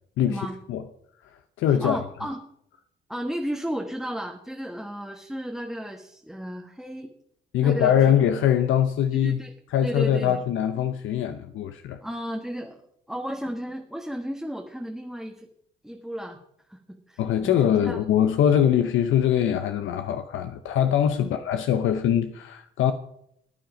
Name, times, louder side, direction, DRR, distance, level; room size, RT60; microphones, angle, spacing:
voice 1, 0.2-0.8 1.6-2.0 7.5-9.4 9.7-12.0 17.2-22.9, left 9 dB, 80° left, 0.8 m, -22 dB
voice 2, 1.8-2.4 3.1-7.1 7.6-8.1 9.1-9.5 9.8-10.4 12.0-12.8 13.1-15.5 15.8-16.4 16.7-18.0 21.2-21.3, equal, ahead, 1.3 m, -33 dB
14.5 x 9.3 x 5.1 m
cardioid pair, 90°, 20 cm